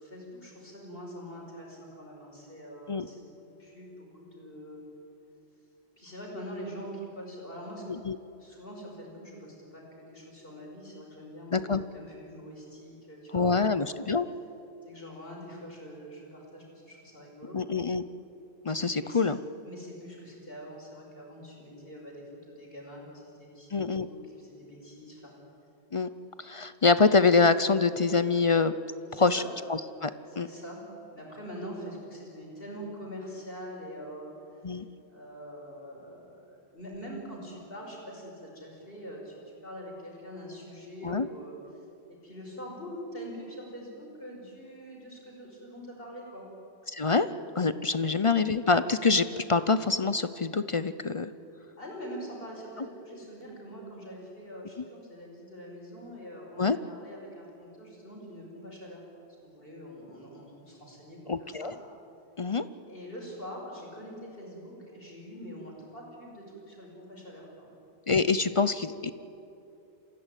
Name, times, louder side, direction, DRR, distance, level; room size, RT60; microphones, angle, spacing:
voice 1, 0.0-3.3 3.6-4.8 6.0-7.8 8.4-13.8 14.8-17.6 19.0-19.2 19.6-25.3 29.1-29.5 30.3-34.3 35.1-41.5 42.1-46.5 51.8-59.0 59.4-61.7 62.9-67.7, equal, 60° left, -1 dB, 5.7 m, -44 dB
voice 2, 11.5-11.8 13.3-14.3 17.5-18.0 18.6-19.4 23.7-24.1 25.9-26.1 26.4-28.7 29.1-29.4 29.7-30.1 30.4-30.5 34.6-34.9 41.0-41.3 46.9-47.3 47.6-51.3 56.6-56.8 61.3-61.7 62.4-62.6 68.1-69.1, left 4 dB, 35° left, 13 dB, 0.6 m, -25 dB
26.0 x 16.0 x 9.1 m, 3.0 s
omnidirectional pair, 1.1 m